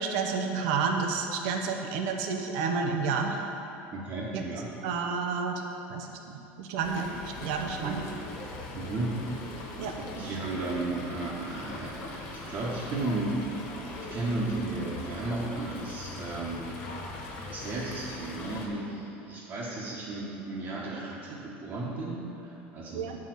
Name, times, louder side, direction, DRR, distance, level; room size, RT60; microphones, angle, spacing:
voice 1, 0.0-3.5 4.3-4.4 4.8-5.6 5.9-8.1 9.8-10.4 22.9-23.2, right 5 dB, 75° right, 3 dB, 0.7 m, -30 dB
voice 2, 3.9-4.7 7.8-8.0 8.7-9.1 10.1-13.4 14.1-16.7 17.5-23.1, right 2 dB, 45° right, -7 dB, 1.3 m, -34 dB
Fowl, 6.8-18.7, left 2 dB, 60° left, 1.5 m, -41 dB
8.0 x 4.8 x 6.1 m, 3.0 s
supercardioid pair, 110°, 6 cm